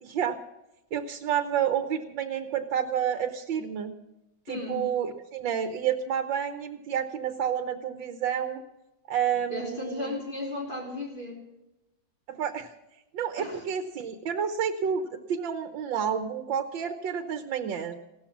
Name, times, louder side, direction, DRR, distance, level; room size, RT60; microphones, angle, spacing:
voice 1, 0.0-0.4 0.9-3.9 4.5-8.6 9.1-10.1 12.3-12.7 13.1-17.9, right 8 dB, 75° right, 8 dB, 1.7 m, -29 dB
voice 2, 4.5-4.9 9.5-11.4 13.4-13.6, left 2 dB, 25° left, -1 dB, 3.9 m, -35 dB
17.0 x 13.0 x 5.9 m, 0.96 s
omnidirectional pair, 2.1 m